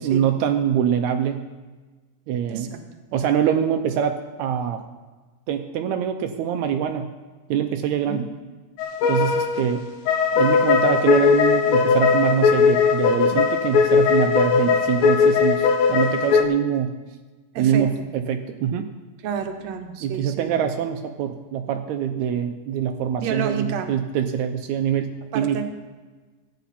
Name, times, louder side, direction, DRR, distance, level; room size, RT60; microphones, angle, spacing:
voice 1, 0.0-1.5 2.3-2.7 3.1-4.8 5.5-7.1 7.5-8.3 9.1-9.9 10.3-16.9 17.6-18.9 20.0-25.6, right 9 dB, 85° right, 6 dB, 1.6 m, -24 dB
voice 2, 2.5-2.8 7.9-8.2 17.5-18.1 19.2-20.5 23.2-23.9 25.3-25.6, right 7 dB, 70° right, 7 dB, 1.7 m, -30 dB
sound 1, 8.8-16.4, left 6 dB, 90° left, 2.5 m, -19 dB
16.0 x 9.1 x 4.2 m, 1.3 s
omnidirectional pair, 4.0 m